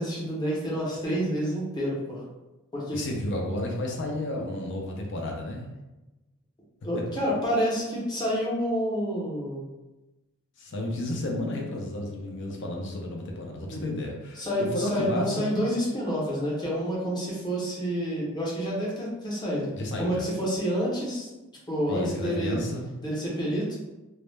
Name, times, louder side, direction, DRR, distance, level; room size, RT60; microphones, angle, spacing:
voice 1, 0.0-2.2 2.7-3.0 6.8-9.6 13.7-13.9 14.4-19.7 20.0-21.3 21.7-22.6 23.0-23.8, equal, 20° left, -6 dB, 0.8 m, -28 dB
voice 2, 2.9-5.7 10.6-14.5 14.7-15.5 19.7-20.3 21.9-22.8, left 1 dB, 55° left, 0 dB, 0.5 m, -32 dB
2.3 x 2.1 x 3.2 m, 1.0 s
head